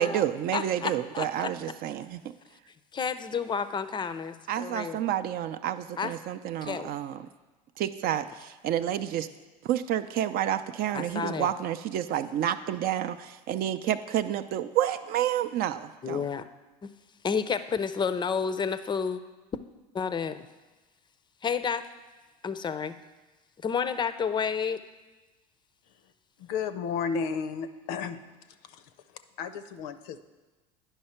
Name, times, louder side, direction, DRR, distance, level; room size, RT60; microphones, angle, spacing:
voice 1, 0.0-2.2 4.5-7.3 7.8-9.3 9.6-16.2, right 11 dB, 45° right, 11 dB, 0.5 m, -29 dB
voice 2, 0.5-1.5 2.9-5.0 6.0-6.1 6.6-6.9 10.9-11.5 16.0-16.5 16.8-16.9 17.2-19.2 19.9-20.5 21.4-21.9 22.4-23.0 23.6-24.8, left 6 dB, 20° left, 12 dB, 0.5 m, -30 dB
voice 3, 26.4-28.2 28.7-28.8 29.4-30.2, left 6 dB, 65° left, 11 dB, 0.6 m, -32 dB
9.8 x 5.6 x 4.4 m, 1.2 s
hypercardioid pair, 80°, 21 cm